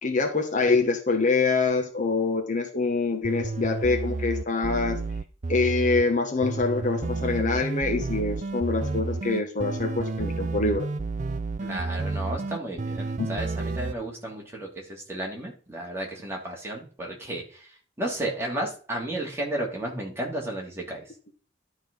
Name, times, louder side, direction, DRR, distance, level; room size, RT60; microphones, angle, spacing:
voice 1, 0.0-5.0 5.5-10.8 13.2-13.3, left 3 dB, 45° left, 4 dB, 1.4 m, -25 dB
sound 1, 3.2-6.0 6.4-13.9, right 3 dB, 45° right, 0.5 m, -31 dB
voice 2, 11.6-17.7 18.0-21.0, right 1 dB, 15° right, -2 dB, 2.9 m, -33 dB
12.0 x 4.3 x 5.3 m, 0.41 s
head